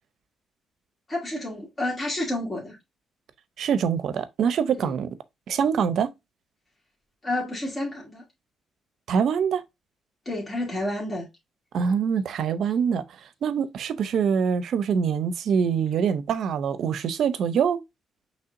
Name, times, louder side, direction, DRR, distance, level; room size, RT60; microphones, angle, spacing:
voice 1, 1.1-2.8 4.8-4.9 7.2-8.2 10.3-11.3, left 1 dB, 30° left, 2.2 m, -30 dB
voice 2, 3.6-5.1 5.5-6.1 9.1-9.6 11.7-13.0 13.4-17.8, right 7 dB, 65° right, 0.6 m, -24 dB
5.6 x 3.3 x 2.5 m
cardioid pair, 90°, 0 cm